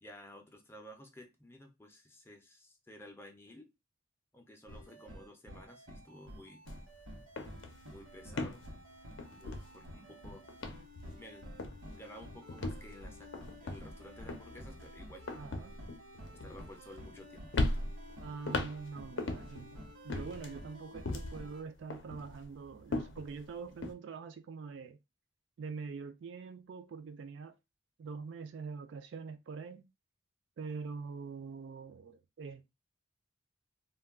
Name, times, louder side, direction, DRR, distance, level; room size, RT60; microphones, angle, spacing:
voice 1, 0.0-3.7 4.3-6.6 7.9-8.6 9.3-10.5 11.2-11.5 12.0-15.3 16.4-17.6, left 1 dB, 10° left, 0.4 m, -53 dB
sound 1, 4.7-21.6, equal, 80° right, 1.0 m, -51 dB
sound 2, 6.7-6.9 7.2-10.2 10.5-11.3 11.6-12.0 12.5-17.2 17.5-19.7 20.1-21.5 21.9-23.9, left 2 dB, 65° left, 0.5 m, -39 dB
voice 2, 15.3-15.8 18.2-25.0 25.6-27.6 28.0-29.9 30.6-32.7, right 5 dB, 60° right, 0.3 m, -44 dB
2.2 x 2.2 x 3.4 m
head